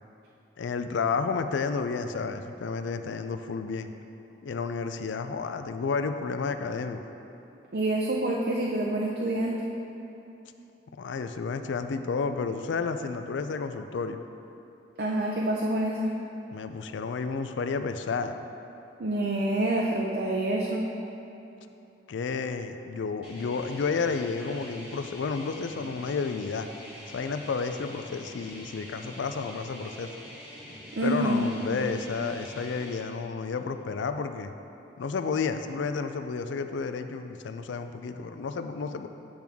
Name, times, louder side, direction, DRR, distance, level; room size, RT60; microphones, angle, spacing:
voice 1, 0.6-3.9 4.4-7.0 11.0-14.2 16.5-18.4 22.1-26.7 27.1-30.1 31.0-34.5 35.0-39.1, left 5 dB, 75° left, 8 dB, 0.4 m, -31 dB
voice 2, 7.7-9.6 15.0-16.1 19.0-20.9 31.0-31.4, right 1 dB, 55° right, -2 dB, 0.5 m, -27 dB
sound 1, 23.2-33.0, equal, 5° right, 1.3 m, -45 dB
8.7 x 5.9 x 3.5 m, 3.0 s
head